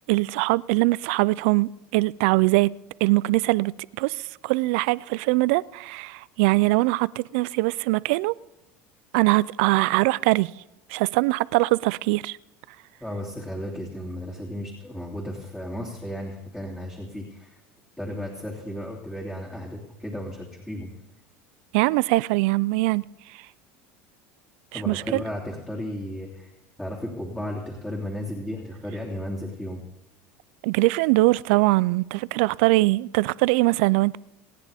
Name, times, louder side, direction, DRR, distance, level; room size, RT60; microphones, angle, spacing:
voice 1, 0.0-2.7 3.0-8.3 9.1-10.5 10.9-12.4 21.7-23.5 24.7-25.2 30.6-34.2, right 22 dB, 75° right, 0.4 m, -22 dB
voice 2, 13.0-17.6 18.0-20.9 24.7-26.5 26.8-29.8, equal, 5° left, 2.9 m, -34 dB
29.0 x 9.8 x 3.5 m
supercardioid pair, 100°, 6 cm